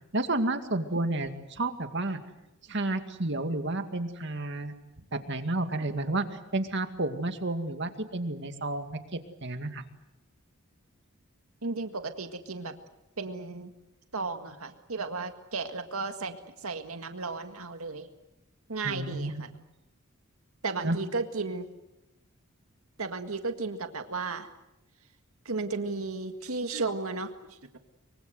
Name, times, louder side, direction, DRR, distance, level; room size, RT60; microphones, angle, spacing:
voice 1, 0.1-2.2 2.7-4.7 5.1-6.3 6.5-9.8 18.8-19.3 20.8-21.0, right 2 dB, 55° right, 7 dB, 2.2 m, -31 dB
voice 2, 11.6-12.8 13.2-13.7 14.1-18.1 18.7-19.5 20.6-21.7 23.0-24.5 25.5-27.8, right 3 dB, 85° right, 7 dB, 1.9 m, -34 dB
24.5 x 24.0 x 8.0 m, 0.92 s
head